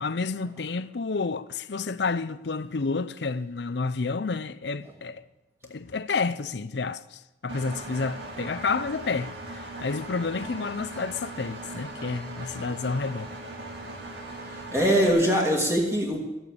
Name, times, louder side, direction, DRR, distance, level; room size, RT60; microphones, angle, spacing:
voice 1, 0.0-5.2 5.7-13.3, left 4 dB, 70° left, 0.6 m, -30 dB
Engine, 7.5-15.1, right 2 dB, 70° right, 2.1 m, -39 dB
voice 2, 14.4-16.3, equal, 15° right, 2.3 m, -23 dB
14.0 x 8.9 x 8.5 m
head